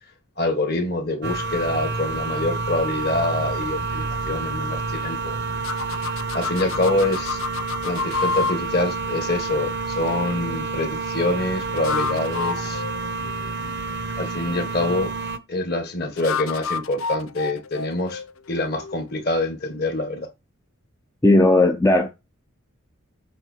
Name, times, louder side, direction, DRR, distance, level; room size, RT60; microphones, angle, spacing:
voice 1, 0.4-5.4 6.3-7.4 7.8-12.8 14.2-15.1 15.5-18.2 18.5-20.3, left 2 dB, 45° left, 1.7 m, -25 dB
sound 1, 1.2-15.4, right 3 dB, 50° right, 0.8 m, -29 dB
sound 2, 5.6-8.6 11.6-13.7 16.2-19.1, left 5 dB, 75° left, 0.6 m, -29 dB
voice 2, 21.2-22.1, left 2 dB, 15° left, 0.6 m, -16 dB
7.7 x 3.8 x 6.7 m
head